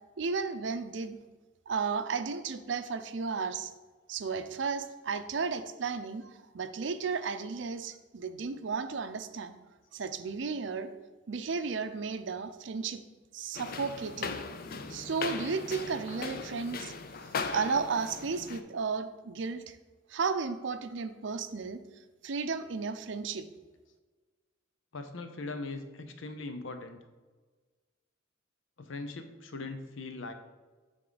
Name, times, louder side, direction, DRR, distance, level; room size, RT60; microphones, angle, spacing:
voice 1, 0.2-1.2 1.7-3.7 4.1-9.6 9.9-10.9 11.3-13.0 13.3-14.4 14.9-16.9 17.5-19.8 20.1-21.8 22.2-23.5, right 5 dB, 65° right, 10 dB, 0.5 m, -34 dB
sound 1, 13.5-18.6, left 4 dB, 50° left, 0.5 m, -38 dB
voice 2, 24.9-27.0 28.8-30.3, left 3 dB, 85° left, 7 dB, 0.7 m, -40 dB
9.1 x 3.8 x 4.0 m, 1.3 s
head